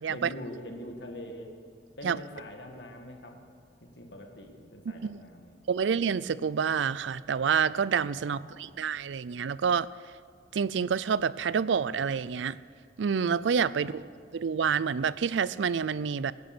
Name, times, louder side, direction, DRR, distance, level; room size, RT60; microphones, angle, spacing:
voice 1, 0.1-1.5 2.0-3.4 3.8-5.6 8.2-8.8 13.8-14.0, equal, 65° left, 3 dB, 2.0 m, -44 dB
voice 2, 5.7-9.9 10.5-12.6 13.0-14.0 14.3-16.3, right 6 dB, 90° right, 19 dB, 0.4 m, -28 dB
17.5 x 10.5 x 6.1 m, 2.2 s
head